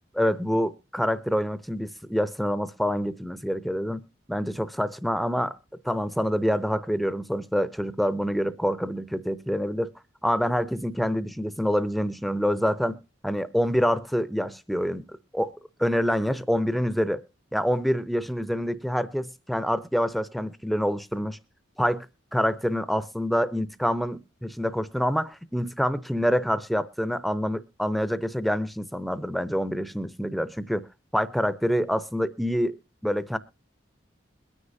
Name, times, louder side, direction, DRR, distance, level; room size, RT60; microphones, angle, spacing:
voice 1, 0.1-4.0 4.3-5.5 5.8-9.9 10.2-13.0 13.2-15.0 15.3-15.5 15.8-17.2 17.5-21.4 21.8-22.1 22.3-30.8 31.1-32.8 33.0-33.4, equal, ahead, 0.6 m, -26 dB
22.0 x 9.8 x 2.6 m
head